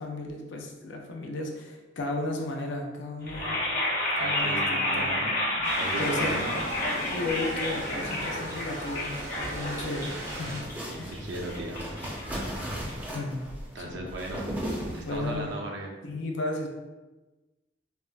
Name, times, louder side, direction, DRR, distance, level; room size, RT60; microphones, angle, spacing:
voice 1, 0.0-3.6 4.2-5.1 6.0-6.3 7.1-10.6 11.0-11.2 13.1-13.4 13.8-14.1 15.0-15.5 16.0-16.7, left 2 dB, 80° left, 2 dB, 0.5 m, -34 dB
sound 1, 3.2-13.3, left 1 dB, 45° left, 0.8 m, -31 dB
voice 2, 4.2-5.3 5.8-6.6 10.9-12.2 13.7-14.5 14.9-15.9, right 2 dB, 65° right, 0 dB, 0.5 m, -37 dB
sound 2, 5.6-10.6, right 1 dB, 85° right, 1.2 m, -38 dB
sound 3, 9.5-15.4, equal, 10° right, 0.5 m, -37 dB
4.3 x 2.0 x 2.3 m, 1.1 s
head